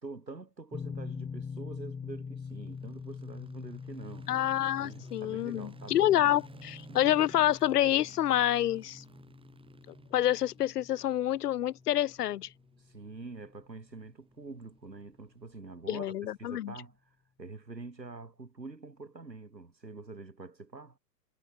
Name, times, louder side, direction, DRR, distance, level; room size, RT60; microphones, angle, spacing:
voice 1, 0.0-4.3 4.8-7.0 12.8-17.0 17.4-21.0, right 3 dB, 90° right, 5.3 m, -46 dB
sound 1, 0.7-13.6, left 6 dB, 10° left, 3.1 m, -45 dB
sound 2, 2.4-16.5, right 5 dB, 10° right, 4.9 m, -57 dB
voice 2, 4.3-9.0 9.9-12.5 15.9-16.7, left 12 dB, 70° left, 0.6 m, -28 dB
figure-of-eight pair, 110°, 49 cm